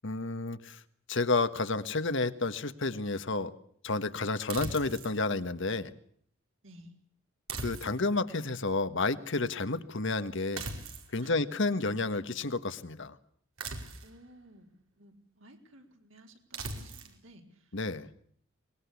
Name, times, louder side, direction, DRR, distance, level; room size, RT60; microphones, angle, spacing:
voice 1, 0.0-0.8 1.1-3.5 3.8-5.9 7.6-10.6 11.1-13.1 17.7-18.1, left 3 dB, 65° left, 11 dB, 1.5 m, -31 dB
sound 1, 4.5-5.2 7.5-8.2 10.6-11.1 13.6-14.2 16.5-17.2, right 3 dB, 85° right, 4.7 m, -39 dB
voice 2, 14.0-14.7 15.0-17.7, right 1 dB, 70° right, 3 dB, 4.7 m, -55 dB
24.0 x 21.0 x 8.4 m, 0.63 s
head